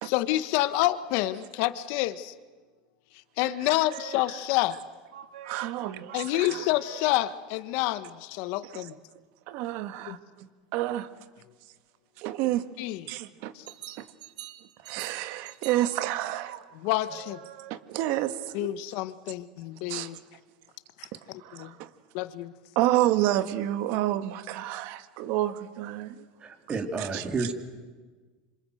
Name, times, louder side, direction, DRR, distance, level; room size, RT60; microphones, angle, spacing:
voice 1, 0.0-2.3 3.4-4.8 6.1-8.9 10.1-10.2 12.8-13.0 13.5-13.6 16.8-17.4 18.5-20.2 21.0-21.1 21.5-21.8 22.1-22.5, left 16 dB, 60° left, 1.3 m, -28 dB
sound 1, 3.8-4.6 5.1-7.5 13.6-18.1, right 12 dB, 85° right, 1.5 m, -46 dB
voice 2, 5.4-6.1 6.3-6.7 8.6-8.9 9.5-11.1 12.2-12.7 13.1-13.5 13.9-14.1 14.8-16.6 17.7-18.7 19.9-20.2 21.1-21.9 22.8-26.3 27.0-27.5, right 14 dB, 60° right, 1.7 m, -30 dB
voice 3, 26.4-27.5, right 4 dB, 25° right, 3.1 m, -31 dB
27.0 x 25.5 x 8.0 m
supercardioid pair, 120°, 4 cm